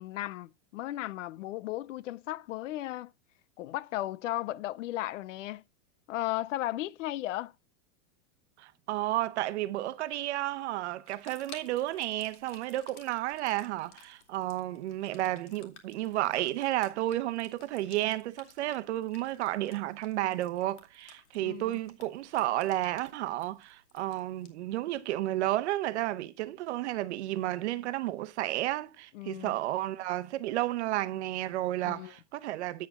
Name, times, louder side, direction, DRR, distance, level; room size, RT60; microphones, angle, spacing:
voice 1, 0.0-3.1 3.6-5.6 6.1-7.5 21.4-21.8 29.1-29.5 31.8-32.1, left 15 dB, 85° left, 0.6 m, -35 dB
voice 2, 8.6-32.9, right 15 dB, 65° right, 0.9 m, -32 dB
sound 1, 11.1-24.5, left 7 dB, 65° left, 2.4 m, -57 dB
8.5 x 8.3 x 3.6 m
supercardioid pair, 170°, 36 cm